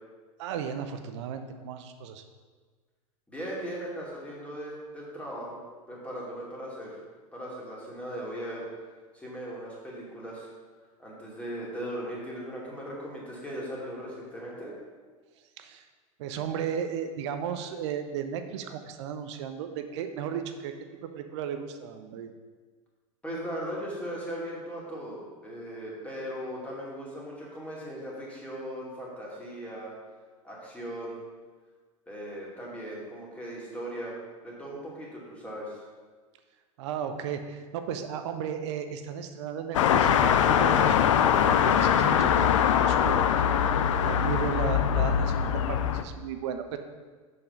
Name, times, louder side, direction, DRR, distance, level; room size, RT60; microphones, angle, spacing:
voice 1, 0.4-2.2 15.6-15.8 16.2-20.7 21.1-22.3 36.8-41.2 41.6-43.2 44.0-46.8, right 8 dB, 55° right, 8 dB, 0.7 m, -35 dB
voice 2, 3.3-5.6 5.9-7.0 7.3-8.7 9.1-10.5 11.0-14.7 23.2-30.0 30.4-31.2 32.1-34.2 34.4-35.8 44.5-44.7, equal, 5° left, -5 dB, 2.3 m, -38 dB
sound 1, 39.7-46.0, left 8 dB, 60° left, 0.5 m, -22 dB
6.9 x 5.3 x 5.2 m, 1.5 s
figure-of-eight pair, 85°, 18 cm